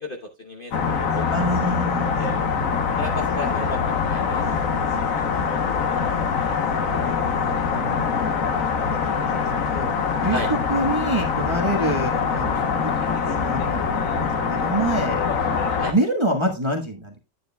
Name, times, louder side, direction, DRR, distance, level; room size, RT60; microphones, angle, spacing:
voice 1, 0.0-1.2 2.2-2.3 2.9-4.7 5.1-5.2 5.9-6.1 10.3-10.5 11.8-11.9 15.8-15.9, left 1 dB, 40° left, 2 dB, 0.9 m, -33 dB
sound 1, 0.7-15.9, left 6 dB, 55° left, 1.3 m, -24 dB
voice 2, 1.3-3.2 5.3-6.2 6.9-7.1 7.4-8.1 8.6-9.9 10.2-10.4 10.7-15.2 15.8-17.2, right 1 dB, 20° right, 1 dB, 1.1 m, -28 dB
9.8 x 9.3 x 2.2 m, 0.25 s
omnidirectional pair, 1.9 m